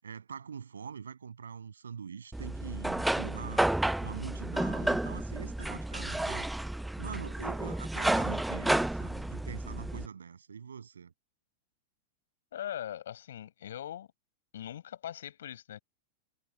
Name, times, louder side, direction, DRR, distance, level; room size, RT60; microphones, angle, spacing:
voice 1, 0.0-3.6 4.0-6.5 7.0-11.1, right 6 dB, 70° right, 7.9 m, -43 dB
sound 1, 2.3-10.1, right 1 dB, 5° right, 0.7 m, -31 dB
voice 2, 12.5-14.1 14.5-15.8, left 11 dB, 60° left, 6.3 m, -41 dB
figure-of-eight pair, 90°, 0 cm